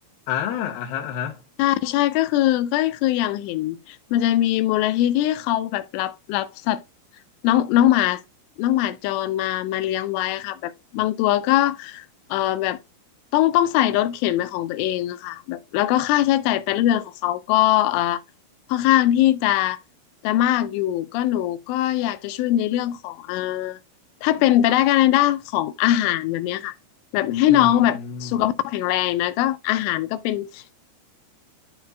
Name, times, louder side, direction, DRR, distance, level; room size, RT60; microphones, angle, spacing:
voice 1, 0.3-1.4 27.5-28.3, left 8 dB, 65° left, 2.4 m, -29 dB
voice 2, 1.6-6.8 7.4-8.2 8.6-12.1 12.3-12.8 13.3-18.2 18.7-19.8 20.2-23.8 24.2-26.7 27.1-30.8, left 13 dB, 80° left, 3.1 m, -21 dB
12.5 x 4.2 x 2.2 m
omnidirectional pair, 5.7 m